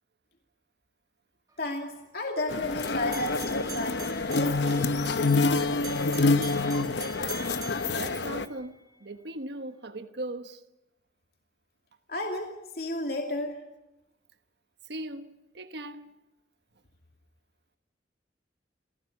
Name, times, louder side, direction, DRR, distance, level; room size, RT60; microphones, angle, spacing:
voice 1, 1.6-4.9 12.1-13.6, left 1 dB, 60° left, 2.6 m, -33 dB
sound 1, 2.5-8.5, left 3 dB, 75° left, 1.0 m, -27 dB
sound 2, 2.8-9.0, right 5 dB, 20° right, 1.6 m, -44 dB
voice 2, 7.9-10.6 14.8-16.2, right 1 dB, 70° right, 1.2 m, -39 dB
29.0 x 17.0 x 8.5 m
head